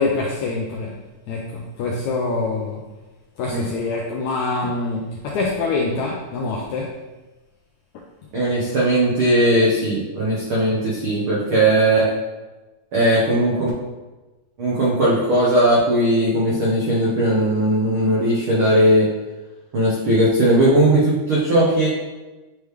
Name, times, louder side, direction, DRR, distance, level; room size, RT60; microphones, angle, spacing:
voice 1, 0.0-2.8 3.4-7.0, left 3 dB, 85° left, -1 dB, 1.7 m, -25 dB
voice 2, 8.3-12.1 12.9-13.7 14.6-19.1 19.7-21.9, right 1 dB, 85° right, -6 dB, 1.1 m, -18 dB
9.2 x 3.4 x 3.2 m, 1.1 s
omnidirectional pair, 4.0 m